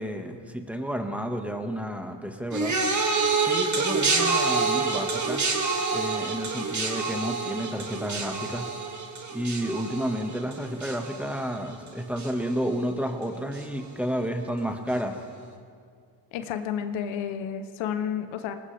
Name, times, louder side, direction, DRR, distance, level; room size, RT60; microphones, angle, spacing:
voice 1, 0.0-2.8 3.4-5.4 5.9-8.7 9.3-15.2, equal, 5° right, 4 dB, 1.7 m, -31 dB
sound 1, 2.5-11.9 12.2-12.7 13.5-13.6, right 4 dB, 40° right, 2.3 m, -27 dB
voice 2, 16.3-18.5, left 8 dB, 85° left, 8 dB, 1.0 m, -31 dB
20.5 x 18.5 x 3.5 m, 2.2 s
supercardioid pair, 75°, 45 cm